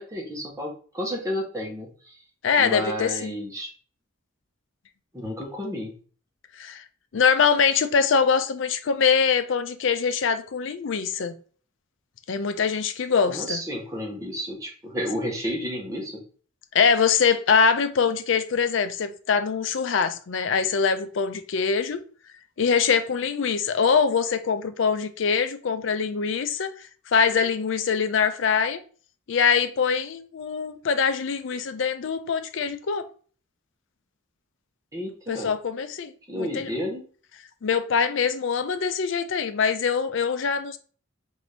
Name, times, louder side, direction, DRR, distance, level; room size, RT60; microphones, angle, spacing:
voice 1, 0.0-2.2 2.6-3.7 5.1-6.0 13.3-16.2 34.9-35.5 36.3-37.0, equal, 15° right, 1.0 m, -31 dB
voice 2, 2.4-3.4 6.5-6.8 7.1-11.4 12.3-13.6 16.7-22.0 22.6-28.8 29.3-33.1 35.3-36.7 37.6-40.8, left 6 dB, 65° left, 0.4 m, -23 dB
4.0 x 2.7 x 3.3 m
head